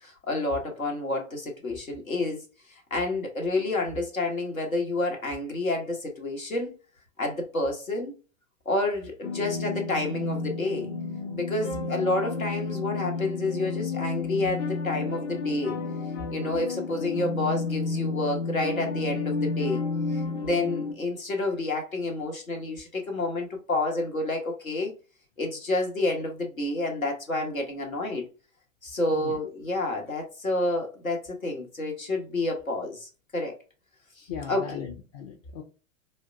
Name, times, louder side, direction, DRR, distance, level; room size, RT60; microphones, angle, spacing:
voice 1, 0.0-2.4 2.9-6.7 7.2-8.1 8.6-10.9 11.4-15.8 16.3-19.8 20.1-24.9 25.4-28.3 28.8-33.5 34.2-34.8, left 2 dB, 85° left, 1.1 m, -29 dB
sound 1, 9.2-20.9, left 3 dB, 55° left, 1.0 m, -31 dB
voice 2, 34.3-35.6, left 7 dB, 30° left, 0.5 m, -38 dB
4.4 x 2.1 x 2.5 m
figure-of-eight pair, 95°, 40 cm